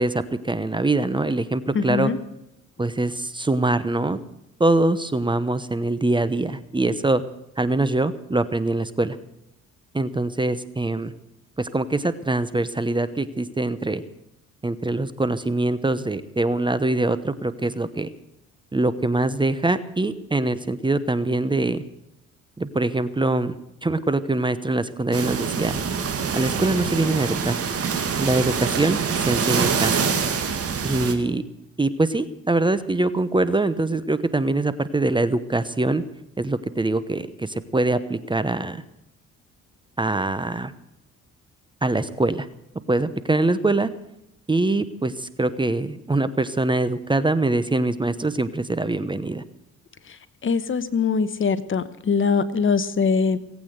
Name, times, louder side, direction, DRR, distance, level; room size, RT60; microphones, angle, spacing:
voice 1, 0.0-2.1 2.8-4.2 4.6-7.2 7.6-9.2 9.9-11.1 11.6-14.0 14.6-18.1 18.7-21.8 22.6-23.5 23.8-25.8 26.3-27.6 28.2-30.1 30.8-31.4 31.8-36.0 36.4-38.8 40.0-40.7 41.8-42.5 42.9-43.9 44.5-49.4, right 2 dB, 15° right, 14 dB, 0.9 m, -23 dB
voice 2, 1.7-2.2 50.4-53.4, left 5 dB, 40° left, 13 dB, 1.1 m, -22 dB
sound 1, 25.1-31.1, right 6 dB, 50° right, 2.2 m, -25 dB
18.5 x 8.7 x 7.9 m, 0.85 s
cardioid pair, 90°, 30 cm